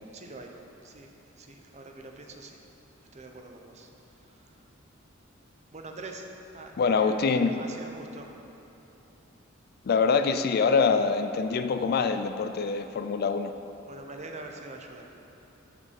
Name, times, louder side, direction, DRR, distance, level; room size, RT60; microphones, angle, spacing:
voice 1, 0.1-0.5 0.8-1.1 1.4-2.6 3.1-3.9 5.7-6.2 6.5-7.3 7.5-8.3 13.9-15.1, right 2 dB, 35° right, 3 dB, 0.7 m, -44 dB
voice 2, 6.8-7.6 9.8-13.5, left 5 dB, 50° left, 9 dB, 0.4 m, -24 dB
6.7 x 6.0 x 6.5 m, 3.0 s
head